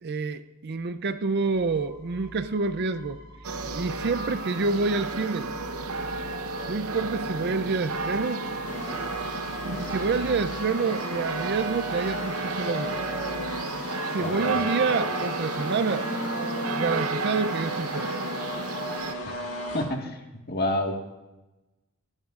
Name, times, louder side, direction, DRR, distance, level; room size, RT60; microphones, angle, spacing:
voice 1, 0.0-3.2 3.7-5.5 6.7-8.5 9.9-13.0 14.1-16.1 16.7-18.2, right 4 dB, 50° right, 11 dB, 0.5 m, -28 dB
sound 1, 1.5-13.6, equal, 20° right, 3.0 m, -46 dB
sound 2, 3.4-19.1, right 3 dB, 75° right, 0.8 m, -32 dB
sound 3, 8.6-19.8, left 2 dB, 85° left, 3.3 m, -35 dB
voice 2, 14.1-14.6 19.3-19.4 19.7-20.2 20.5-21.1, left 1 dB, 45° left, 3 dB, 1.6 m, -29 dB
28.5 x 12.0 x 2.4 m, 1.0 s
head